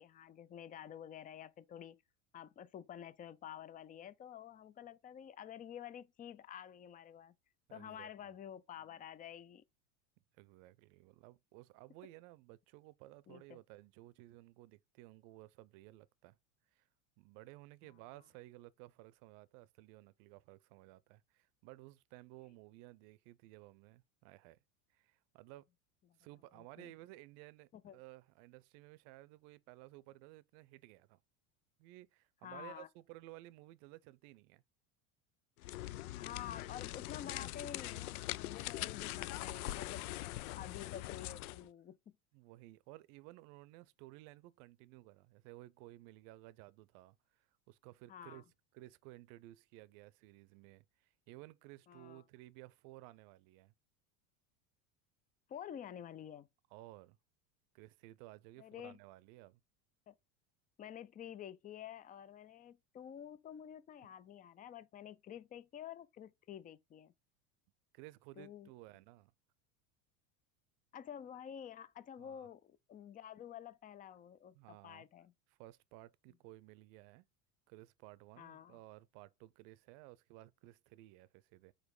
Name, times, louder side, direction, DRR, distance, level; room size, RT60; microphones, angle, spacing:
voice 1, 0.0-2.0 2.3-7.3 7.7-9.6 13.3-13.6 26.5-26.9 27.7-28.0 32.4-32.9 36.2-40.1 40.5-42.2 48.1-48.4 51.9-52.2 55.5-56.5 58.6-59.0 60.1-60.2 60.8-67.1 68.4-68.7 70.9-75.3 78.4-78.8, left 9 dB, 20° left, 0.4 m, -50 dB
voice 2, 7.7-8.3 10.4-16.4 16.7-16.9 17.2-24.6 24.9-25.7 26.2-31.2 31.8-34.6 38.6-39.0 42.3-48.4 48.7-53.7 56.7-57.2 57.7-59.6 67.9-69.3 72.2-72.5 74.5-75.1 75.6-77.3 77.7-81.7, right 18 dB, 60° right, 0.6 m, -56 dB
sound 1, 35.6-41.7, left 16 dB, 80° left, 0.6 m, -42 dB
5.0 x 4.5 x 4.7 m
supercardioid pair, 115°, 44 cm